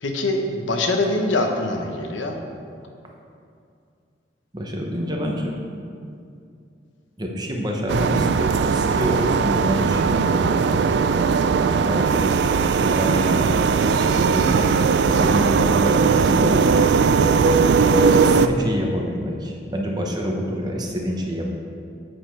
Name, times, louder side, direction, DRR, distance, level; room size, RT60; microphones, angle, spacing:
voice 1, 0.0-2.4, left 2 dB, 90° left, 3 dB, 0.9 m, -23 dB
voice 2, 4.5-5.5 7.2-10.8 11.7-12.2 12.8-14.7 15.1-16.8 18.2-21.5, equal, 20° right, 0 dB, 0.8 m, -27 dB
sound 1, 7.9-18.5, right 5 dB, 65° right, 0.3 m, -18 dB
7.7 x 6.5 x 4.6 m, 2.4 s
head